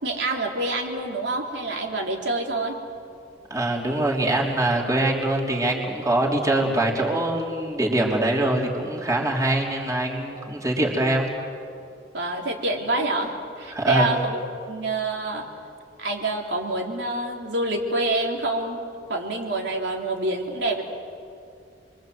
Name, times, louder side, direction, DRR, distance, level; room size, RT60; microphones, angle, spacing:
voice 1, 0.0-2.8 12.1-14.4 14.7-15.4 16.0-18.8 19.1-20.8, right 2 dB, 80° right, 0 dB, 3.4 m, -26 dB
voice 2, 3.5-11.3 13.7-14.1, right 1 dB, 20° right, -2 dB, 3.4 m, -23 dB
29.0 x 23.0 x 7.9 m, 2.4 s
head